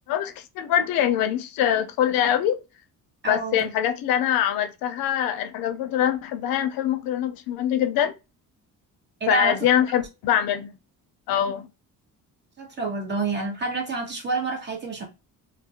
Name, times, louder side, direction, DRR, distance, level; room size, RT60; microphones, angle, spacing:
voice 1, 0.1-2.6 3.3-8.1 9.3-10.7 11.3-11.7, left 10 dB, 80° left, 0.5 m, -23 dB
voice 2, 3.2-3.6 9.2-9.6 12.6-15.1, right 3 dB, 30° right, 0.8 m, -28 dB
2.3 x 2.0 x 2.7 m
cardioid pair, 130°, 35 cm